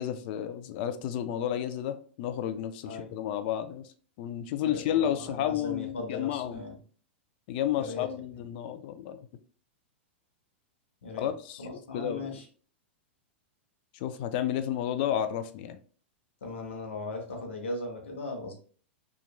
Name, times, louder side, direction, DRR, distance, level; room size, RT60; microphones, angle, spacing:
voice 1, 0.0-3.9 4.2-6.6 7.5-9.3 11.2-11.7 11.9-12.3 13.9-15.8, left 10 dB, 50° left, 10 dB, 0.4 m, -31 dB
voice 2, 4.6-6.8 7.8-8.1 8.4-8.5 11.0-11.3 11.6-12.5 16.4-18.5, left 2 dB, 85° left, 2 dB, 0.9 m, -38 dB
2.9 x 2.4 x 2.3 m, 0.43 s
hypercardioid pair, 110°, 7 cm